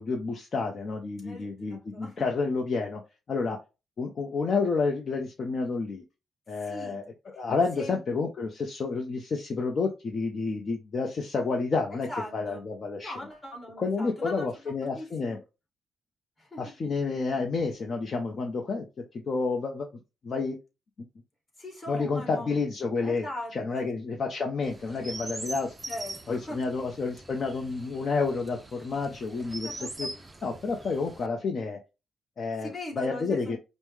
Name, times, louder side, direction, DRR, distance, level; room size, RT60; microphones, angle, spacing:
voice 1, 0.0-3.0 3.3-3.6 4.0-6.0 6.5-12.1 12.3-13.1 13.8-15.4 16.6-18.8 19.3-19.9 20.2-20.6 21.9-23.3 23.5-25.7 26.3-30.1 30.4-31.8 32.4-32.7 33.0-33.6, left 4 dB, 40° left, 0.6 m, -30 dB
voice 2, 1.2-2.3 6.6-7.0 7.8-8.0 11.9-12.6 12.9-14.5 14.8-15.4 16.4-16.6 21.6-22.6 23.0-23.5 23.8-23.9 25.9-26.6 29.6-30.1 32.6-33.6, left 1 dB, 15° left, 2.0 m, -40 dB
Chirp tweet, 24.6-31.3, right 2 dB, 20° right, 0.4 m, -42 dB
5.2 x 2.1 x 3.2 m
cardioid pair, 140°, 0 cm